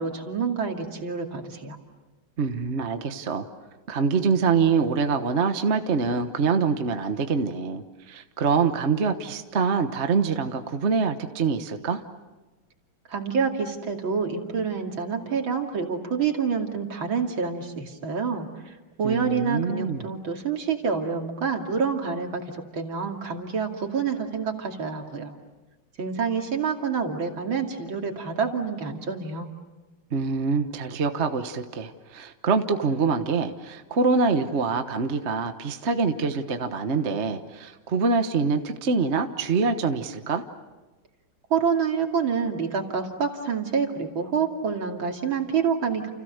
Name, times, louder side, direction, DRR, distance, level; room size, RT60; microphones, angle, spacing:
voice 1, 0.0-1.8 13.1-25.3 26.0-29.5 41.5-46.1, right 6 dB, 70° right, 2 dB, 3.4 m, -27 dB
voice 2, 2.4-3.5 3.9-12.0 19.0-20.0 30.1-40.4, right 5 dB, 40° right, 7 dB, 1.3 m, -25 dB
30.0 x 29.5 x 6.6 m, 1.2 s
omnidirectional pair, 2.3 m